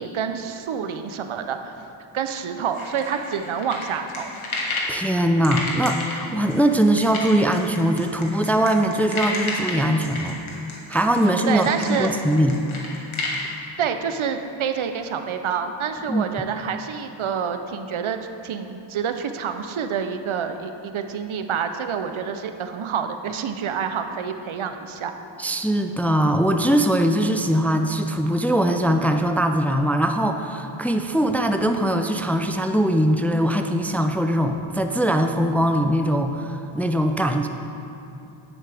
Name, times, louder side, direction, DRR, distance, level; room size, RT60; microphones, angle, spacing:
voice 1, 0.0-1.7 2.1-4.3 11.2-12.1 13.8-25.1, right 7 dB, 80° right, 7 dB, 0.6 m, -28 dB
sound 1, 2.7-5.0 5.4-13.4, left 3 dB, 80° left, 1.6 m, -31 dB
voice 2, 4.9-10.4 10.9-12.7 16.1-16.3 25.4-37.5, right 1 dB, 5° left, 6 dB, 0.4 m, -21 dB
9.9 x 8.4 x 3.4 m, 2.8 s
wide cardioid pair, 65°, 47 cm